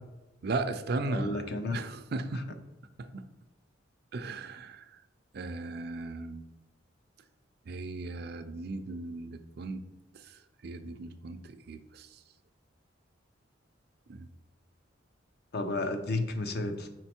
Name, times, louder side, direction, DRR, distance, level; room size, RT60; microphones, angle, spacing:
voice 1, 0.4-1.4 1.7-2.6 3.0-3.2 4.1-4.8 5.3-6.4 7.7-9.8 10.6-12.1 14.1-14.3, right 3 dB, 55° right, 9 dB, 0.5 m, -36 dB
voice 2, 1.1-1.8 2.3-2.4 15.5-16.9, left 2 dB, 55° left, 7 dB, 0.6 m, -32 dB
5.1 x 4.4 x 4.3 m, 1.1 s
head